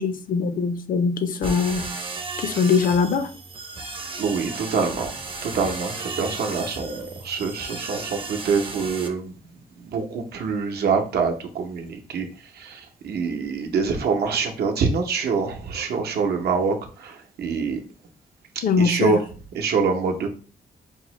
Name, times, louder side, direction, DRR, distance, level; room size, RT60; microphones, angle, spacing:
voice 1, 0.0-1.9 2.4-3.3 18.6-19.2, left 5 dB, 60° left, 0.5 m, -22 dB
sound 1, 1.4-9.1, right 3 dB, 30° right, 0.5 m, -34 dB
voice 2, 4.2-9.4 9.8-17.8 18.8-19.2 19.5-20.3, right 5 dB, 80° right, 0.7 m, -25 dB
5.4 x 2.0 x 3.0 m
cardioid pair, 125°, 16 cm